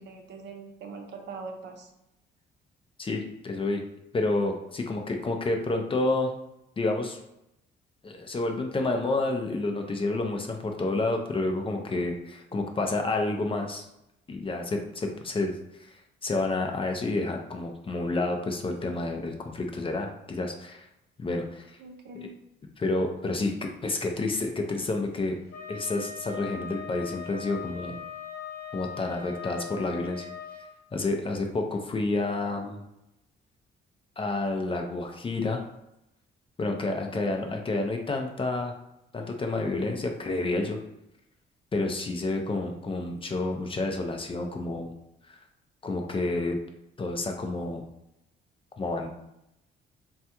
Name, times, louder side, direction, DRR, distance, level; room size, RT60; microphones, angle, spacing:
voice 1, 0.0-1.9 11.9-12.0 21.8-22.3 37.1-37.5, right 3 dB, 60° right, 3 dB, 0.6 m, -42 dB
voice 2, 3.0-3.8 4.1-6.3 6.8-7.2 8.0-12.1 12.5-13.9 14.3-15.5 15.8-20.9 21.2-21.8 22.1-22.3 22.8-25.4 25.7-28.0 28.7-30.3 30.9-32.8 34.2-35.6 36.6-38.7 39.1-40.8 41.7-44.9 45.3-45.4 45.8-46.6 47.0-47.9 48.8-49.1, left 2 dB, 25° left, 3 dB, 0.4 m, -29 dB
Wind instrument woodwind instrument, 25.5-30.6, left 7 dB, 55° left, 0.9 m, -40 dB
3.3 x 2.3 x 2.8 m, 0.84 s
cardioid pair, 90°, 20 cm